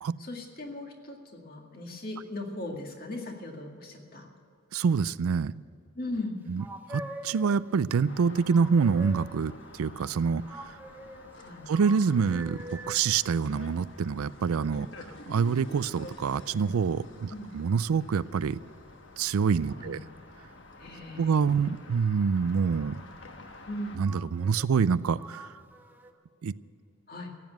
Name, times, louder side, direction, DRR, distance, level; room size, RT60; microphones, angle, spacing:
voice 1, 0.2-4.3 5.9-6.4 11.3-11.7 17.3-17.5 19.7-20.0 20.8-21.6 23.7-24.0 27.1-27.3, left 1 dB, 45° left, 2 dB, 2.1 m, -38 dB
voice 2, 4.7-5.6 6.5-6.6 6.9-10.8 11.7-14.9 15.3-18.6 19.2-20.0 21.2-23.0 24.0-25.5 26.4-26.5, right 6 dB, 85° right, 18 dB, 0.4 m, -26 dB
sound 1, 6.6-7.7 8.5-9.5 10.4-13.1 20.0-20.1 20.8-21.7 22.4-23.2 24.0-24.9 25.2-26.1, right 1 dB, 10° right, 0.8 m, -45 dB
sound 2, 8.1-24.0, left 2 dB, 60° left, 1.3 m, -49 dB
15.5 x 9.3 x 9.2 m, 2.4 s
head